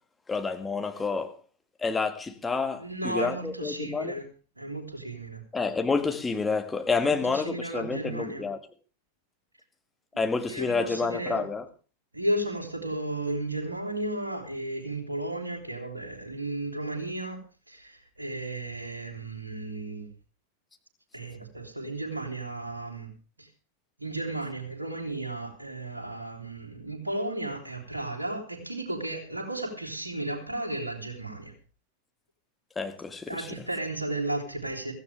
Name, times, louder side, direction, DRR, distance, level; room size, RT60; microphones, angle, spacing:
voice 1, 0.3-1.3 1.8-4.2 5.5-8.6 10.2-11.6 32.8-33.5, left 4 dB, 10° left, 1.8 m, -29 dB
voice 2, 2.8-4.3 4.6-5.4 7.0-8.5 10.1-11.5 12.1-17.4 17.7-20.1 21.1-23.1 23.4-23.5 24.0-31.5 33.3-34.9, right 1 dB, 80° right, 3.3 m, -34 dB
16.5 x 15.0 x 3.5 m
figure-of-eight pair, 90°, 0 cm